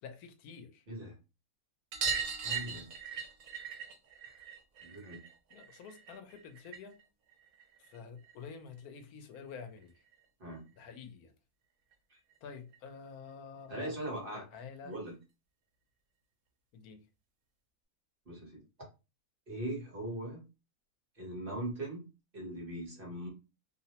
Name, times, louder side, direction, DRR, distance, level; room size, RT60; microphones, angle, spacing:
voice 1, 0.0-0.9 5.5-7.0 7.8-10.0 10.8-11.3 12.4-14.0 14.3-15.0 16.7-17.0, left 6 dB, 80° left, 1.0 m, -48 dB
sound 1, 1.9-7.0 7.3-8.5 9.8-9.9 10.1-10.2 10.5-10.6 11.9-12.0 12.3-12.4 12.7-12.8 14.1-14.2 14.9-15.0, right 6 dB, 80° right, 1.1 m, -39 dB
voice 2, 2.4-2.9 4.8-5.2 10.4-10.6 13.7-14.4 14.8-15.1 18.3-18.6 19.5-20.4 21.1-22.1 22.3-23.3, right 1 dB, 40° right, 1.0 m, -40 dB
2.7 x 2.0 x 2.8 m
omnidirectional pair, 1.6 m